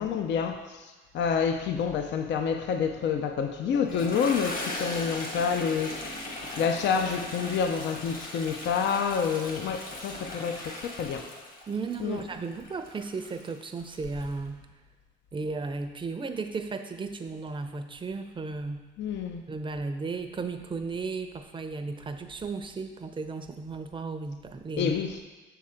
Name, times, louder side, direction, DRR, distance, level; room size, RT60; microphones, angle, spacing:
voice 1, 0.0-11.3 12.0-12.2 19.0-19.5 24.8-25.2, left 6 dB, 65° left, 6 dB, 0.5 m, -28 dB
Toilet flush, 3.7-14.3, left 2 dB, 45° left, 1.4 m, -38 dB
voice 2, 11.7-14.6 15.3-18.9 19.5-25.0, right 4 dB, 25° right, 7 dB, 0.5 m, -35 dB
6.5 x 3.7 x 4.3 m, 1.2 s
cardioid pair, 90°, 20 cm